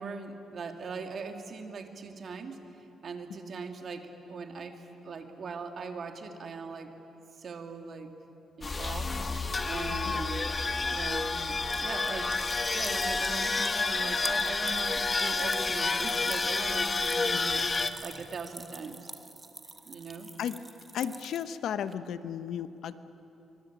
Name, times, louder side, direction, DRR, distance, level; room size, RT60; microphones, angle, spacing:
voice 1, 0.0-6.9 7.4-8.1 8.6-9.1 9.6-10.5 10.9-12.3 12.7-19.0 19.9-20.3, right 4 dB, 50° right, 5 dB, 2.5 m, -40 dB
sound 1, 8.6-17.9, left 3 dB, 25° left, 1.3 m, -29 dB
sound 2, 10.2-21.9, right 3 dB, 20° right, 1.5 m, -47 dB
voice 2, 20.9-22.9, left 9 dB, 75° left, 12 dB, 1.0 m, -34 dB
25.0 x 24.5 x 8.9 m, 3.0 s
cardioid pair, 115°, 0 cm